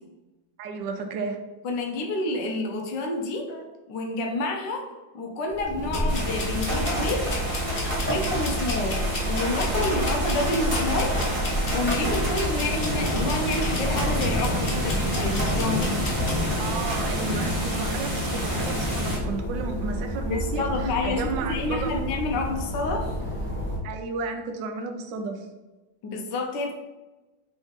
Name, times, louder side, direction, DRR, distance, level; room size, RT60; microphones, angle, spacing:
voice 1, 0.6-1.4 16.6-21.9 23.8-25.5, right 4 dB, 75° right, 4 dB, 1.2 m, -33 dB
voice 2, 1.6-7.4 8.0-11.2 11.7-16.0 20.3-23.1 26.0-26.7, left 2 dB, 70° left, 2 dB, 1.2 m, -29 dB
sound 1, 5.5-23.8, equal, 10° left, 0.6 m, -31 dB
sound 2, 5.9-16.4, right 1 dB, 55° left, 0.6 m, -33 dB
sound 3, 6.1-19.2, equal, 30° right, 1.5 m, -29 dB
3.7 x 3.5 x 3.9 m, 1.1 s
omnidirectional pair, 2.1 m